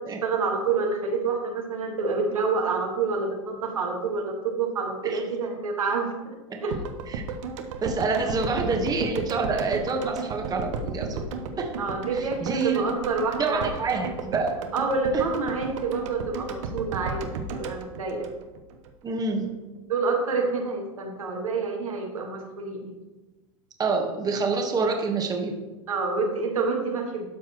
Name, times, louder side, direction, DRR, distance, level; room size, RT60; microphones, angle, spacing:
voice 1, 0.0-6.8 8.3-8.4 11.8-14.1 14.7-18.3 19.9-22.9 25.9-27.2, right 4 dB, 90° right, 1 dB, 1.6 m, -28 dB
sound 1, 6.7-18.9 19.2-19.3, right 4 dB, 65° right, 0.9 m, -34 dB
voice 2, 7.8-11.2 11.6-11.7 12.1-12.9 13.4-14.6 19.0-19.5 23.8-25.5, right 4 dB, 20° right, 3 dB, 1.2 m, -27 dB
12.5 x 4.5 x 3.0 m, 1.2 s
hypercardioid pair, 105°, 17 cm